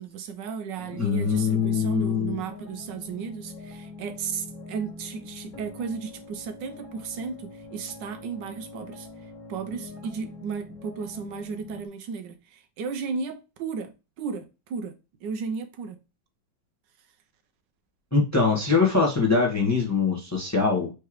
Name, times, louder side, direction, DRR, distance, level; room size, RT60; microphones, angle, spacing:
voice 1, 0.0-16.0, right 5 dB, 75° right, 1.3 m, -34 dB
sound 1, 0.8-11.9, left 3 dB, 50° left, 1.8 m, -43 dB
voice 2, 1.0-2.4 18.1-20.9, left 4 dB, 10° left, 1.0 m, -23 dB
4.8 x 3.4 x 2.9 m
omnidirectional pair, 2.0 m